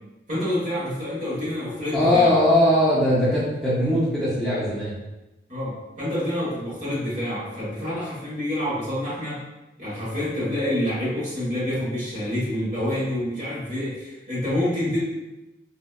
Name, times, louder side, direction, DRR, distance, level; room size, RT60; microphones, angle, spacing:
voice 1, 0.3-2.3 5.5-9.4 9.8-15.0, left 1 dB, 45° right, -7 dB, 1.2 m, -27 dB
voice 2, 1.9-4.9, left 1 dB, ahead, -11 dB, 0.6 m, -20 dB
3.8 x 2.1 x 2.3 m, 0.99 s
head